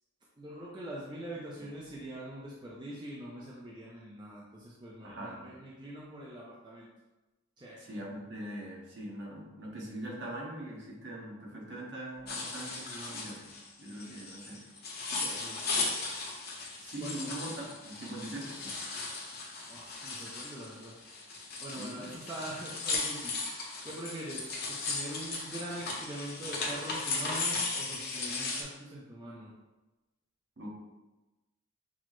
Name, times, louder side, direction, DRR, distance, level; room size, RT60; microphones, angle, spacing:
voice 1, 0.4-6.9 7.6-7.8 15.2-15.7 16.6-17.3 19.3-21.0 21.6-23.4 23.8-29.5, right 1 dB, 20° right, -6 dB, 0.5 m, -43 dB
voice 2, 5.0-5.5 7.8-13.5 13.8-14.6 16.8-18.7 21.7-22.1 30.6-30.7, right 1 dB, 55° right, -3 dB, 1.0 m, -42 dB
sound 1, 12.3-28.6, left 3 dB, 45° left, 0.7 m, -37 dB
6.0 x 2.1 x 3.0 m, 1.1 s
head